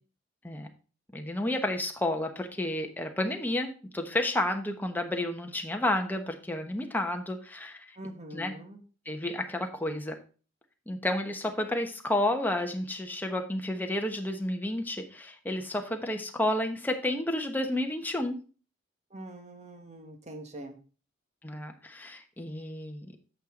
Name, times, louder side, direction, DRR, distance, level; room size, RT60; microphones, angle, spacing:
voice 1, 1.1-7.9 8.3-8.5 9.0-10.2 10.9-18.4 21.4-23.1, left 1 dB, 10° left, 4 dB, 1.1 m, -31 dB
voice 2, 8.0-8.8 19.1-20.8, right 1 dB, 35° right, 5 dB, 1.5 m, -43 dB
9.1 x 6.7 x 3.8 m, 0.37 s
head